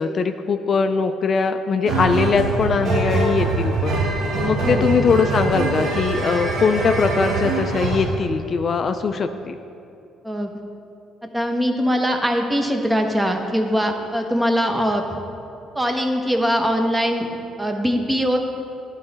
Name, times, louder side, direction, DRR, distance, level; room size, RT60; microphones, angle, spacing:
voice 1, 0.0-4.0 4.4-9.6, left 5 dB, 50° left, 8 dB, 0.3 m, -21 dB
sound 1, 1.9-8.1, right 3 dB, 70° right, 1.2 m, -23 dB
voice 2, 11.3-15.0 15.7-17.3 17.6-18.4, equal, 10° right, 4 dB, 0.8 m, -21 dB
10.5 x 3.9 x 3.9 m, 2.6 s
supercardioid pair, 70°, 0 cm